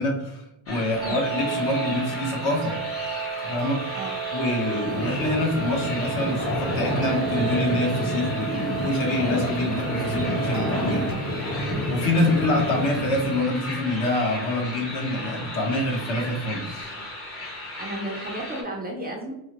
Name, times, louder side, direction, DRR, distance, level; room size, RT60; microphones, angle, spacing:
voice 1, 0.0-2.8 3.4-4.0 4.3-11.4 11.9-16.9, left 1 dB, 50° left, 1 dB, 1.1 m, -26 dB
sound 1, 0.7-18.6, left 1 dB, 30° left, 1.0 m, -36 dB
sound 2, 1.0-11.1, right 7 dB, 85° right, 0.6 m, -33 dB
sound 3, 4.9-13.4, left 1 dB, 90° left, 1.1 m, -29 dB
voice 2, 17.5-19.3, right 1 dB, 20° right, -1 dB, 0.5 m, -33 dB
4.6 x 2.1 x 2.9 m, 0.86 s
cardioid pair, 125°, 49 cm